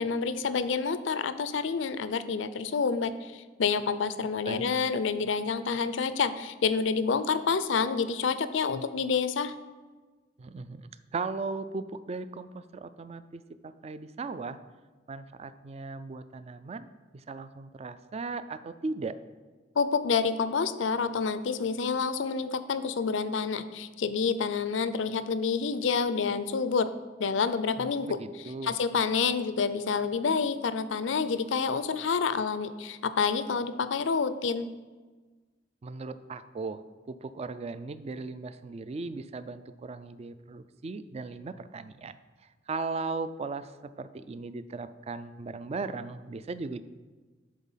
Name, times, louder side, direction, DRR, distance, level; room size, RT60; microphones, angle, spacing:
voice 1, 0.0-9.5 19.8-26.9 27.2-28.2 28.6-34.7, left 5 dB, 85° left, 13 dB, 0.5 m, -28 dB
voice 2, 10.4-14.6 15.1-16.9 17.3-19.2 27.8-28.8 35.8-36.8 37.1-42.1 42.7-43.7 44.0-46.8, right 3 dB, 35° right, 13 dB, 0.3 m, -37 dB
11.0 x 4.1 x 5.6 m, 1.3 s
head